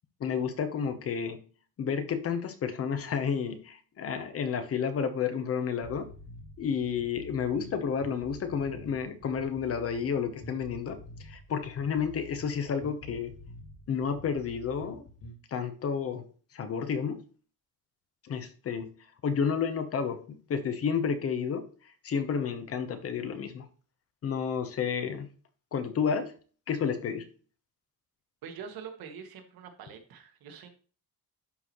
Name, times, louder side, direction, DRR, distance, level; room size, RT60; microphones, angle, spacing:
voice 1, 0.2-1.4 1.8-6.1 6.6-13.3 13.9-15.1 15.5-16.3 16.5-17.2 18.2-18.9 19.2-21.6 22.0-23.7 24.2-25.3 25.7-26.3 26.7-27.2, left 6 dB, 40° left, 9 dB, 0.8 m, -31 dB
sound 1, 5.8-15.4, left 1 dB, 65° left, 4.0 m, -48 dB
voice 2, 28.4-30.7, right 6 dB, 85° right, 6 dB, 1.4 m, -44 dB
11.5 x 4.1 x 3.0 m, 0.40 s
cardioid pair, 170°, 35 cm